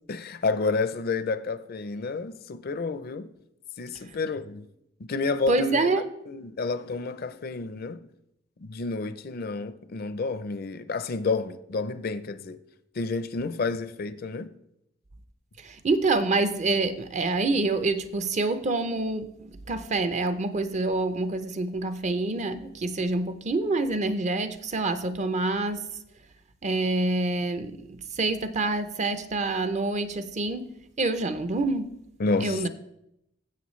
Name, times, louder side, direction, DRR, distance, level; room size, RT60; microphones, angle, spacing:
voice 1, 0.1-3.3 3.8-4.7 5.0-5.9 6.3-8.1 8.6-12.6 12.9-14.5 32.2-32.7, left 3 dB, 50° left, 0.5 m, -30 dB
voice 2, 5.5-6.1 15.6-26.0 26.6-32.0 32.4-32.7, right 2 dB, 40° right, 0.6 m, -27 dB
16.0 x 7.5 x 3.1 m
head